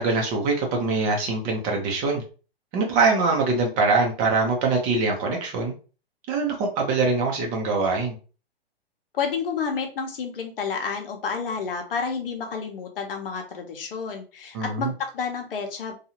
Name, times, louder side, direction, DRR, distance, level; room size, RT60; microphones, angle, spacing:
voice 1, 0.0-2.2 2.7-5.7 6.3-8.2 14.5-14.9, right 3 dB, 25° right, 1 dB, 0.7 m, -23 dB
voice 2, 9.1-15.9, left 5 dB, 65° left, 3 dB, 0.8 m, -30 dB
2.7 x 2.4 x 2.8 m, 0.35 s
hypercardioid pair, 125°, 31 cm